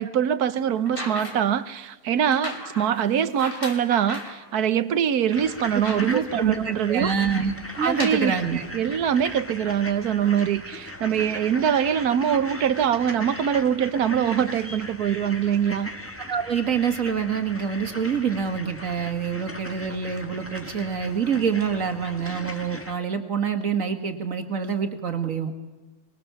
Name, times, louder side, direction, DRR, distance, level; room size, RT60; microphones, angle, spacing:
voice 1, 0.0-7.1 7.8-8.4 8.7-15.9, right 8 dB, 90° right, 14 dB, 1.4 m, -23 dB
sound 1, 0.8-1.6 2.3-4.4 5.0-5.1 5.4-6.5 7.6-8.3 9.3-9.4, left 1 dB, 35° left, 3.7 m, -36 dB
sound 2, 5.3-23.0, left 1 dB, 10° left, 1.6 m, -38 dB
voice 2, 6.1-8.7 16.3-25.5, right 7 dB, 60° right, 6 dB, 2.4 m, -26 dB
24.0 x 22.5 x 7.0 m, 1.2 s
omnidirectional pair, 1.6 m